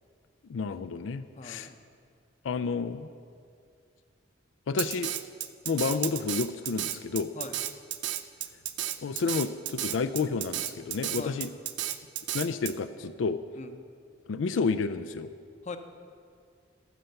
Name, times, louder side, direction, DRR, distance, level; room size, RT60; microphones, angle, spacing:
voice 1, 0.5-1.7 2.4-3.1 4.7-5.1 5.7-7.3 9.0-11.5 12.3-13.4 14.3-15.3, left 4 dB, 85° left, 11 dB, 0.4 m, -30 dB
voice 2, 1.4-1.8 7.3-7.6 11.2-11.4 13.6-13.7 15.6-15.8, left 3 dB, 35° left, 8 dB, 0.7 m, -40 dB
Drum kit, 4.8-12.7, right 12 dB, 65° right, 0.5 m, -33 dB
13.0 x 5.7 x 7.8 m, 2.3 s
head